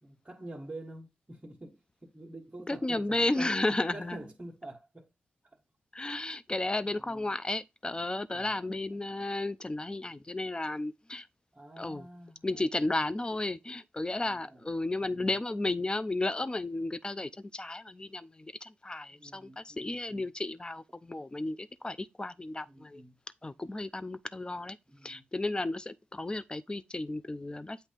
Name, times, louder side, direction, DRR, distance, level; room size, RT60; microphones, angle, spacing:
voice 1, 0.0-3.5 3.9-5.1 5.4-5.6 6.5-7.4 8.3-8.7 11.5-12.8 14.2-14.7 15.0-15.3 19.1-20.3 22.7-23.2 24.9-25.2, right 1 dB, 25° right, 1.6 m, -47 dB
voice 2, 2.7-4.2 5.9-11.3 11.8-12.1 12.4-23.0 23.4-24.8 25.0-27.9, left 2 dB, 25° left, 0.6 m, -33 dB
8.3 x 2.8 x 5.1 m
cardioid pair, 55°, 4 cm